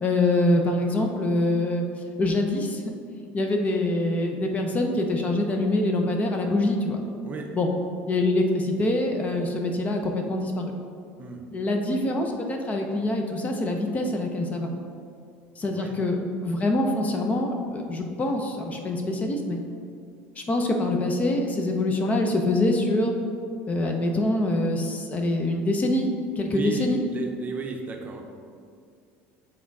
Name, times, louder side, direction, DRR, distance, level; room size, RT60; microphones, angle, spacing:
voice 1, 0.0-1.8 2.2-2.8 3.3-7.0 7.5-7.7 8.1-10.7 11.5-14.7 15.6-19.6 20.4-23.1 23.7-26.1 26.4-27.0, left 2 dB, 30° left, 3 dB, 0.7 m, -25 dB
voice 2, 15.6-16.0 26.5-28.2, right 4 dB, 30° right, 2 dB, 0.7 m, -34 dB
7.1 x 3.6 x 4.6 m, 2.3 s
supercardioid pair, 115°, 5 cm